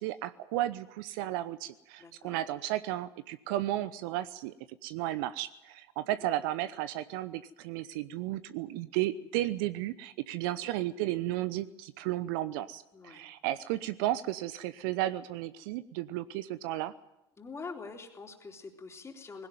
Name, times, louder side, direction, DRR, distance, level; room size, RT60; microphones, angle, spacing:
voice 1, 0.0-4.5 4.8-16.9, right 14 dB, 55° right, 15 dB, 0.8 m, -34 dB
voice 2, 2.0-2.4 6.0-6.1 10.5-10.7 12.9-13.2 17.4-19.5, left 4 dB, 20° left, 2 dB, 3.7 m, -45 dB
20.5 x 17.0 x 9.4 m, 0.91 s
figure-of-eight pair, 75°, 14 cm